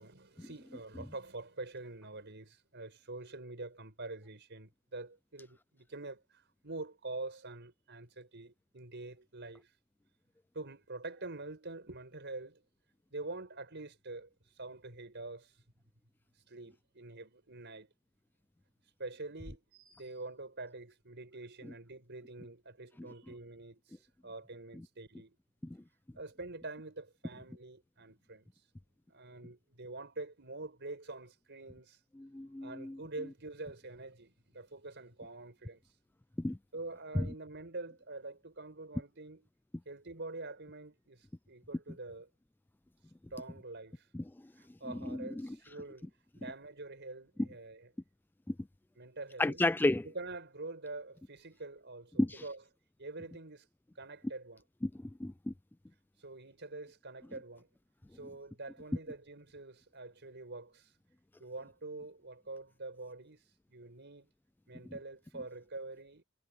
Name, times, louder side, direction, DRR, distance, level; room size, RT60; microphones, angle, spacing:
voice 1, 0.0-9.7 10.5-12.6 13.1-14.3 14.6-15.5 16.5-17.9 19.0-25.4 26.1-28.5 29.1-32.0 32.6-35.8 36.7-39.5 39.9-42.3 43.3-44.1 44.6-46.1 46.4-47.9 49.0-49.6 50.0-52.6 53.0-53.7 54.0-54.6 56.2-57.7 58.1-60.9 61.4-63.4 63.7-64.3 64.7-66.2, right 2 dB, 55° right, 5.3 m, -46 dB
voice 2, 32.2-33.0 36.4-36.6 37.2-37.3 44.1-44.2 44.9-45.5 48.5-48.6 49.4-50.1 52.2-52.4 54.8-54.9 55.2-55.5, left 2 dB, 10° left, 0.3 m, -32 dB
head